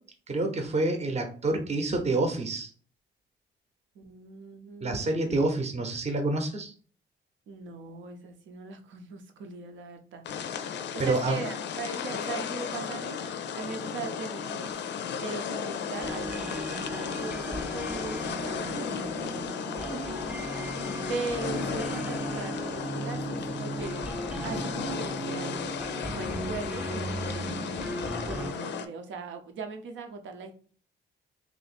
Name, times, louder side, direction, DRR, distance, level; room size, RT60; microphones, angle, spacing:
voice 1, 0.3-2.7 4.8-6.7 11.0-11.4, right 2 dB, 35° right, 4 dB, 0.8 m, -27 dB
voice 2, 3.9-5.0 7.5-10.2 10.9-20.0 21.1-23.2 23.5-24.0 24.4-28.0 28.2-30.5, right 4 dB, 70° right, 5 dB, 0.8 m, -40 dB
sound 1, 10.2-28.9, left 7 dB, 65° left, 0.5 m, -35 dB
sound 2, 15.9-28.5, right 2 dB, 5° right, 0.3 m, -36 dB
2.9 x 2.6 x 4.2 m, 0.42 s
cardioid pair, 90°, 20 cm